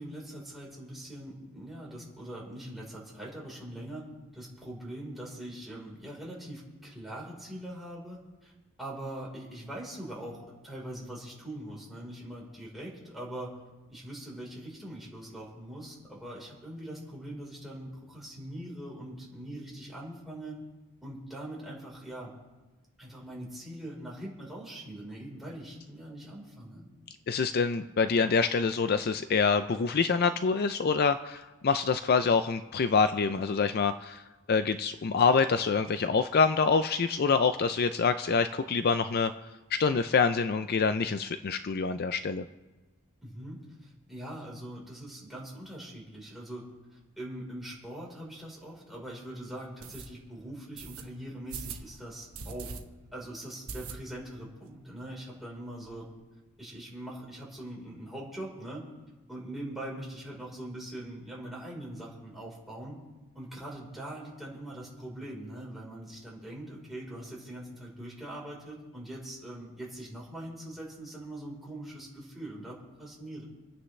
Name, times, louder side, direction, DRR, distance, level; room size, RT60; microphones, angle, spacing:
voice 1, 0.0-4.0 4.3-8.5 8.8-13.6 13.9-20.6 21.0-22.3 23.0-26.8 43.2-46.6 46.9-52.8 53.1-56.1 56.6-58.8 59.3-63.0 63.3-73.4, right 1 dB, ahead, -5 dB, 4.1 m, -42 dB
voice 2, 27.3-34.2 34.5-39.3 39.7-42.4, left 5 dB, 45° left, 10 dB, 0.4 m, -26 dB
sound 1, 48.4-48.5 49.0-49.1 49.8-50.1 50.8-51.0 51.5-51.9 52.3-52.8 53.1-53.2 53.7-54.3 54.7-54.8 55.0-55.1 55.4-56.0, right 5 dB, 80° right, 1.1 m, -41 dB
29.0 x 9.7 x 3.2 m, 1.2 s
head